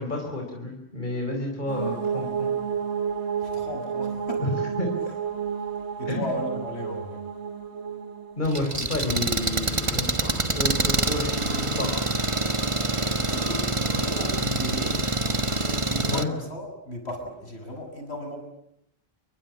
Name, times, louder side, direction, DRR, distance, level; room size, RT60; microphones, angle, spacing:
voice 1, 0.0-2.5 4.4-4.5 4.8-4.9 6.1-6.2 8.4-11.9 16.0-16.3, left 2 dB, 45° left, 2 dB, 4.9 m, -30 dB
sound 1, 1.7-8.5, right 7 dB, 90° right, 1.8 m, -31 dB
voice 2, 3.4-4.5 6.0-7.2 12.9-15.0 15.8-18.4, equal, 75° left, 3 dB, 7.3 m, -35 dB
Engine, 8.4-16.2, right 2 dB, 30° right, 1.5 m, -26 dB
29.5 x 23.0 x 8.6 m, 0.77 s
omnidirectional pair, 1.1 m